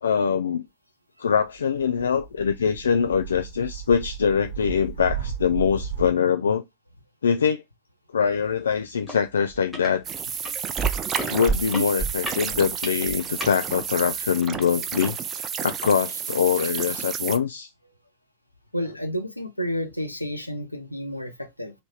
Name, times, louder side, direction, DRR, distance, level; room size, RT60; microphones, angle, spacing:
voice 1, 0.0-0.6 1.2-6.6 7.2-7.6 8.1-10.0 11.3-15.1 15.6-17.7, left 6 dB, 70° left, 0.3 m, -23 dB
sound 1, 1.8-6.1, right 7 dB, 50° right, 0.8 m, -34 dB
sound 2, 9.1-9.2 9.5-9.9 10.5-13.5 14.2-14.3, right 3 dB, ahead, 1.3 m, -29 dB
sound 3, 10.0-17.4, right 7 dB, 25° right, 0.5 m, -31 dB
voice 2, 18.7-21.7, equal, 90° left, 0.7 m, -30 dB
3.3 x 2.7 x 4.3 m
figure-of-eight pair, 90°, 0 cm